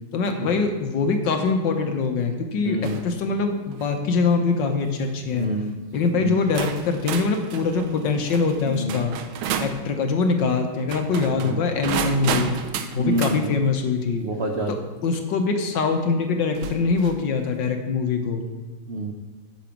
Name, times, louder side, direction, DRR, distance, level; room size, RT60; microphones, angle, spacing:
voice 1, 0.1-5.5 5.9-9.1 9.6-12.5 12.9-14.2 14.7-14.8 15.0-18.4, left 4 dB, 65° left, 5 dB, 1.6 m, -23 dB
voice 2, 2.6-3.0 5.3-5.7 6.1-6.4 8.7-9.0 11.3-11.6 12.1-12.4 13.0-13.5 14.1-14.7 18.9-19.1, right 1 dB, 60° right, 2 dB, 0.6 m, -28 dB
sound 1, 2.8-3.1 3.6-4.0 4.8-5.1 5.9-6.0 6.6-9.8 10.8-13.4 15.1-15.2 16.5-17.2, right 7 dB, 85° right, 1.5 m, -31 dB
8.9 x 5.2 x 7.2 m, 1.4 s
omnidirectional pair, 2.2 m